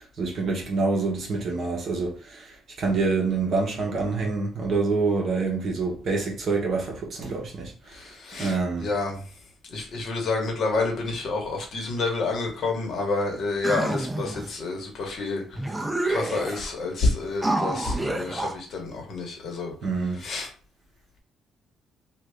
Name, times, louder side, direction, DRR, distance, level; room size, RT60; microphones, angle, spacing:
voice 1, 0.2-2.5 2.8-7.7 8.4-8.9 19.8-20.2, right 4 dB, 45° right, 0.9 m, -26 dB
voice 2, 7.9-9.2 9.7-15.6 16.0-19.7 20.2-20.5, left 3 dB, 45° left, 1.1 m, -29 dB
sound 1, 13.6-14.5 15.2-15.3 15.6-16.7 17.4-18.5, right 2 dB, 10° right, 0.3 m, -28 dB
3.3 x 2.3 x 3.4 m
cardioid pair, 160°, 0 cm